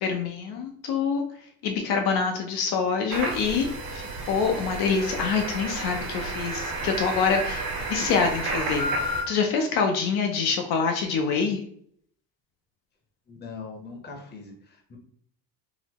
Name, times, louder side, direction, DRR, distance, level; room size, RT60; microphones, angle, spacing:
voice 1, 0.0-1.2 1.6-3.7 3.9-8.9 9.3-11.6, left 5 dB, 65° left, 3 dB, 0.6 m, -26 dB
sound 1, 3.1-9.2, right 2 dB, 60° right, 1.4 m, -31 dB
voice 2, 13.3-15.0, left 4 dB, 25° left, 2 dB, 0.8 m, -41 dB
3.9 x 2.0 x 2.9 m, 0.64 s
cardioid pair, 115°, 40 cm